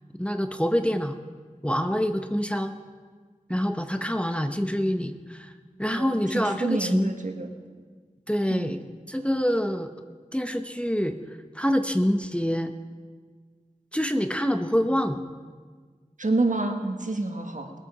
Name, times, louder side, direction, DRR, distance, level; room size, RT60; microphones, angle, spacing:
voice 1, 0.2-1.2 1.6-2.7 3.5-5.5 5.8-7.1 8.3-8.8 9.1-9.9 10.3-12.7 13.9-15.2, equal, 10° left, 7 dB, 0.8 m, -26 dB
voice 2, 5.9-7.5 8.5-8.7 16.2-17.7, right 2 dB, 70° right, 4 dB, 1.4 m, -28 dB
20.5 x 8.2 x 4.9 m, 1.5 s
wide cardioid pair, 50°, 14 cm